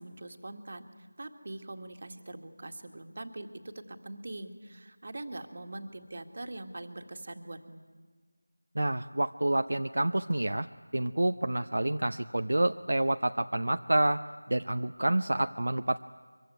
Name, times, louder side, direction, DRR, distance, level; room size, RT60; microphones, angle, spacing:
voice 1, 0.0-7.8, right 2 dB, 40° right, 6 dB, 1.9 m, -43 dB
voice 2, 8.7-10.7 10.9-14.2 14.5-16.0, right 1 dB, 65° right, 8 dB, 0.7 m, -28 dB
24.5 x 23.0 x 9.4 m, 1.5 s
figure-of-eight pair, 175°, 0 cm